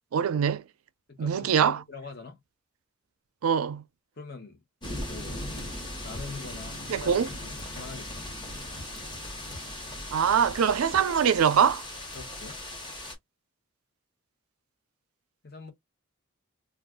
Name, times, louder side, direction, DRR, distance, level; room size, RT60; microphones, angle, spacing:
voice 1, 0.1-0.6 1.2-1.8 3.4-3.8 6.9-7.3 10.1-11.8, right 7 dB, 85° right, 0.4 m, -23 dB
voice 2, 1.1-2.4 4.2-4.6 5.0-5.4 6.0-8.3 12.1-12.6 15.4-15.7, left 4 dB, 50° left, 0.8 m, -43 dB
sound 1, 4.8-13.2, left 1 dB, 20° left, 1.0 m, -38 dB
2.4 x 2.3 x 3.5 m
head